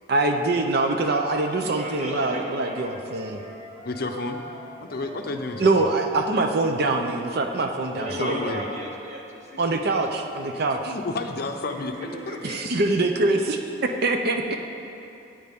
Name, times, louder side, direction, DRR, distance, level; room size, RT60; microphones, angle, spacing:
voice 1, 0.1-3.4 5.6-8.4 9.6-10.9 12.4-13.6 14.0-14.6, right 2 dB, 55° right, 4 dB, 0.6 m, -24 dB
sound 1, 1.2-7.0, left 2 dB, 30° left, 1.5 m, -43 dB
voice 2, 1.6-3.5 7.9-9.8 11.7-12.7, right 1 dB, 35° right, -2 dB, 1.4 m, -36 dB
voice 3, 3.8-4.4 4.8-5.9 8.1-8.6 10.9-12.4, left 3 dB, 55° left, 5 dB, 0.7 m, -31 dB
13.5 x 8.9 x 3.6 m, 2.8 s
head